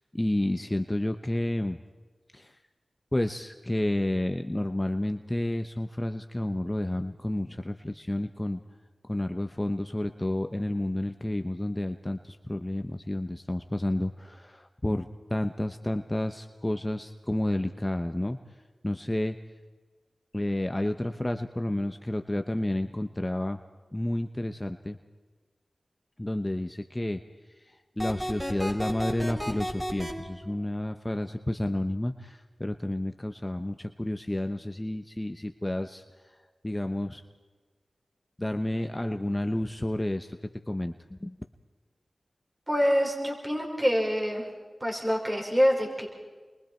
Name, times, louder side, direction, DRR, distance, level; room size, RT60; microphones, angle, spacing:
voice 1, 0.1-1.8 2.3-2.5 3.1-8.6 9.0-18.4 18.8-19.4 20.3-23.6 23.9-25.0 26.2-27.2 28.0-36.0 36.6-37.2 38.4-40.4 40.7-40.9 41.2-41.3, left 1 dB, 20° left, 6 dB, 0.9 m, -30 dB
sound 1, 28.0-30.1, equal, ahead, 4.9 m, -32 dB
voice 2, 42.7-44.4 44.8-46.1, equal, 20° right, 0 dB, 5.5 m, -25 dB
29.0 x 22.5 x 4.5 m, 1.3 s
cardioid pair, 45°, 0 cm